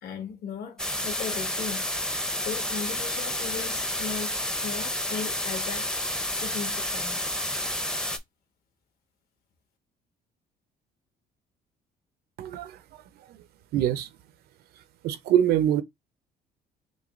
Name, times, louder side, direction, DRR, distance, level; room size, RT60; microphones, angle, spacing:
voice 1, 0.0-1.8 2.3-7.3, left 7 dB, 65° left, 1.7 m, -37 dB
sound 1, 0.8-8.2, left 1 dB, 5° left, 0.6 m, -30 dB
voice 2, 12.4-12.8 13.3-13.4 13.7-14.1 15.0-15.8, right 10 dB, 70° right, 0.6 m, -24 dB
6.1 x 2.3 x 2.5 m
cardioid pair, 110°, 17 cm